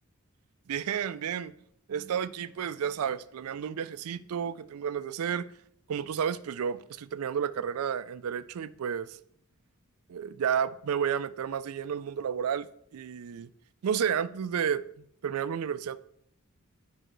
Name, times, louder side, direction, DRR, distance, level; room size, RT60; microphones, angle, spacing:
voice 1, 0.7-1.5 1.9-5.5 5.9-9.2 10.1-13.5 13.8-16.0, right 8 dB, 80° right, 0.4 m, -31 dB
10.0 x 5.5 x 3.1 m
head